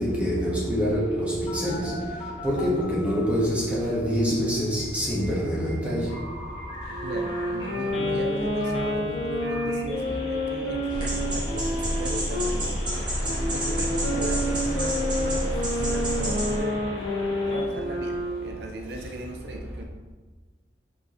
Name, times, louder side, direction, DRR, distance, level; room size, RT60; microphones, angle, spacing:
voice 1, 0.0-1.9 2.4-6.1, equal, 5° right, -6 dB, 1.3 m, -25 dB
Telephone, 0.9-3.4 4.8-17.6, equal, 25° left, 1.5 m, -39 dB
sound 1, 6.8-12.5 13.2-18.6, left 1 dB, 70° left, 1.8 m, -29 dB
voice 2, 7.0-12.8 13.5-16.9 17.5-19.8, right 1 dB, 65° right, 3 dB, 0.6 m, -36 dB
sound 2, 10.9-16.6, equal, 25° right, 1.4 m, -28 dB
6.3 x 5.3 x 3.0 m, 1.3 s
head